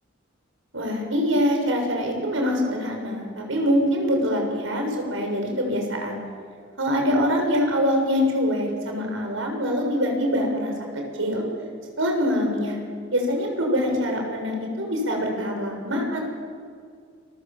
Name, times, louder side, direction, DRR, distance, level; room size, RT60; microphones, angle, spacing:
voice 1, 0.7-6.2 6.8-11.4 12.0-12.8 13.1-16.2, equal, 80° right, 2 dB, 6.8 m, -24 dB
29.5 x 23.5 x 7.7 m, 2.1 s
head